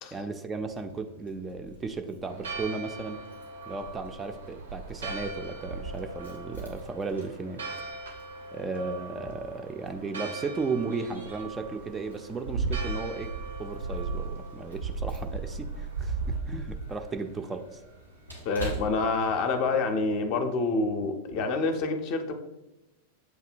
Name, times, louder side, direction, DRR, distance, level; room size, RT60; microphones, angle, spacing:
voice 1, 0.1-3.2 3.7-7.6 8.5-13.3 13.6-17.8, right 4 dB, 15° right, 5 dB, 0.3 m, -35 dB
Keys jangling, 0.6-19.7, right 3 dB, 90° right, 1.5 m, -38 dB
Church bell, 2.3-16.4, right 3 dB, 70° right, 0.6 m, -42 dB
voice 2, 18.4-22.3, left 3 dB, 45° left, 6 dB, 0.5 m, -27 dB
7.7 x 2.7 x 2.5 m, 0.97 s
figure-of-eight pair, 90°, 0 cm